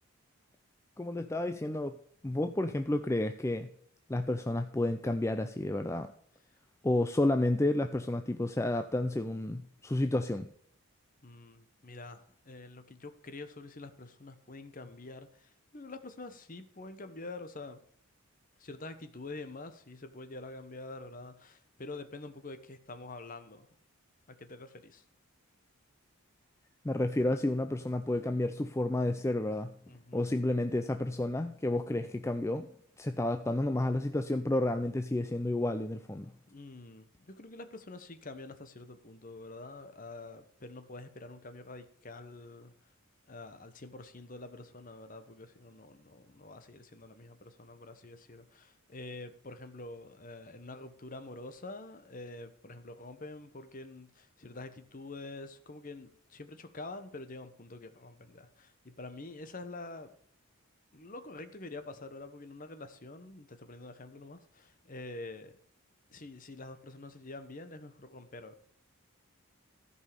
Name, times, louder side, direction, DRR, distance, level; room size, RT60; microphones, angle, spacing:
voice 1, 1.0-2.0 2.2-3.7 4.1-6.1 6.8-10.5 26.8-29.8 30.1-32.7 33.0-36.3, left 1 dB, 15° left, 8 dB, 0.4 m, -31 dB
voice 2, 11.2-17.8 18.6-23.7 24.3-25.0 29.9-30.3 36.5-42.9 43.3-60.2 60.9-65.6 66.1-68.7, left 2 dB, 35° left, 10 dB, 1.0 m, -46 dB
14.0 x 5.5 x 6.7 m, 0.64 s
head